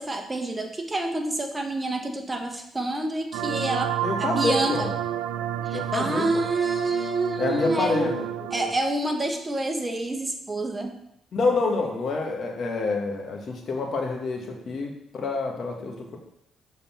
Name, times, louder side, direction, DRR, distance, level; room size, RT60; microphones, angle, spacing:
voice 1, 0.0-4.9 5.6-8.1 8.5-11.0, right 2 dB, 25° right, 4 dB, 1.2 m, -28 dB
sound 1, 3.3-8.7, right 11 dB, 85° right, 0.3 m, -30 dB
voice 2, 4.0-4.9 5.7-6.2 7.4-8.7 11.3-16.2, left 3 dB, 55° left, 2 dB, 1.5 m, -27 dB
7.1 x 4.1 x 5.7 m, 0.77 s
supercardioid pair, 60°, 0 cm